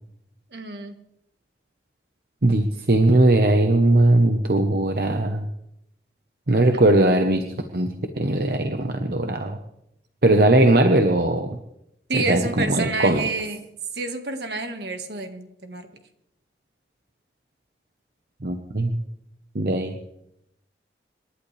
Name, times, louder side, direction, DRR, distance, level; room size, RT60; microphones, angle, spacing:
voice 1, 0.5-0.9 6.7-6.8 12.1-13.6 14.0-15.9, right 3 dB, 75° right, 6 dB, 1.7 m, -29 dB
voice 2, 2.4-5.4 6.5-7.4 7.7-7.9 8.2-9.6 10.2-11.6 12.1-12.4 12.7-13.2 18.4-18.9 19.5-20.0, right 1 dB, 55° right, 5 dB, 1.0 m, -19 dB
27.0 x 11.5 x 3.3 m, 0.80 s
head